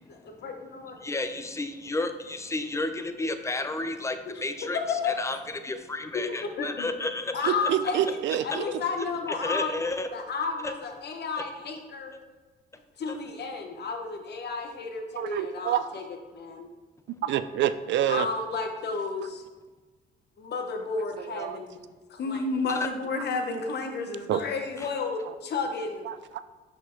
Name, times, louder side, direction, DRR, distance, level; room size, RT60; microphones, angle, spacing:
voice 1, 0.1-1.0 4.3-4.4 4.9-5.1 6.1-6.9 7.3-9.8 10.1-12.1 13.0-16.0 16.3-16.7 18.1-19.4 20.4-21.8 22.1-26.1, left 4 dB, 55° left, 4 dB, 0.9 m, -32 dB
voice 2, 1.0-7.3 9.4-10.1 10.6-10.7 22.7-22.9 24.8-24.9, left 2 dB, 15° left, 8 dB, 0.5 m, -32 dB
voice 3, 7.5-8.7 15.2-15.9 17.2-18.3 21.2-21.6 24.3-24.4 25.3-25.4 26.0-26.4, right 11 dB, 65° right, 13 dB, 0.4 m, -27 dB
5.5 x 5.0 x 3.8 m, 1.3 s
cardioid pair, 90°, 20 cm